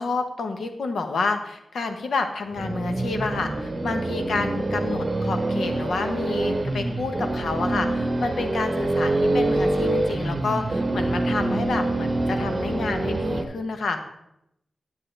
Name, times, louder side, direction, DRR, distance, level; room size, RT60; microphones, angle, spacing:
voice 1, 0.0-14.0, left 3 dB, 80° left, 7 dB, 0.9 m, -29 dB
sound 1, 2.5-13.4, right 2 dB, 30° right, 0.9 m, -25 dB
10.0 x 7.5 x 3.3 m, 0.82 s
wide cardioid pair, 85°, 0 cm